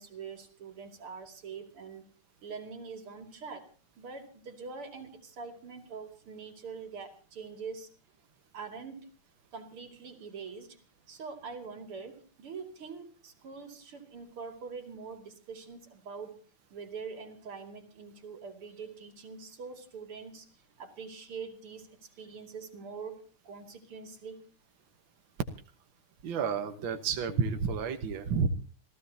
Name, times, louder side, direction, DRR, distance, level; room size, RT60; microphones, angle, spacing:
voice 1, 0.0-2.1 2.4-3.7 4.0-7.9 8.5-9.1 9.5-10.8 11.1-16.3 16.7-20.5 20.8-23.2 23.4-24.4, right 5 dB, 85° right, 6 dB, 3.5 m, -44 dB
voice 2, 26.2-28.5, right 5 dB, 65° right, 6 dB, 1.9 m, -30 dB
27.5 x 16.0 x 2.8 m, 0.40 s
omnidirectional pair, 2.4 m